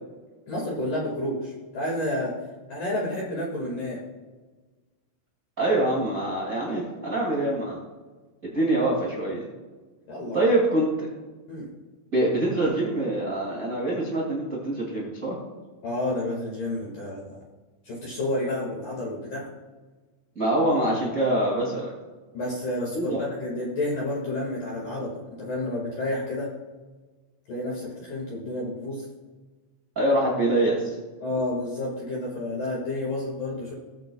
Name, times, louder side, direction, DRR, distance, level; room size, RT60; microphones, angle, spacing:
voice 1, 0.5-2.3 2.7-4.0 10.1-10.4 11.5-11.7 15.8-17.4 17.8-19.5 22.3-26.5 27.5-29.1 31.2-33.7, left 1 dB, 50° left, -5 dB, 2.9 m, -30 dB
voice 2, 5.6-7.8 8.4-9.5 10.3-11.1 12.1-15.4 20.3-21.9 22.9-23.2 29.9-30.9, right 1 dB, 70° right, -4 dB, 0.8 m, -24 dB
19.5 x 7.7 x 2.3 m, 1.3 s
omnidirectional pair, 5.8 m